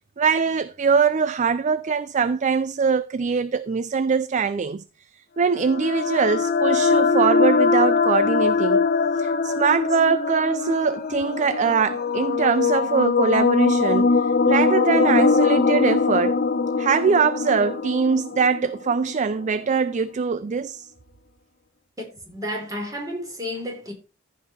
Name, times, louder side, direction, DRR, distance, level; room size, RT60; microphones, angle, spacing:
voice 1, 0.2-4.8 5.4-8.9 9.2-16.4 16.8-20.9, right 5 dB, 35° right, 0.4 m, -22 dB
sound 1, 5.5-19.2, left 4 dB, 45° left, 0.8 m, -22 dB
voice 2, 22.0-23.9, left 1 dB, 15° right, 3.9 m, -32 dB
14.5 x 5.4 x 4.4 m
head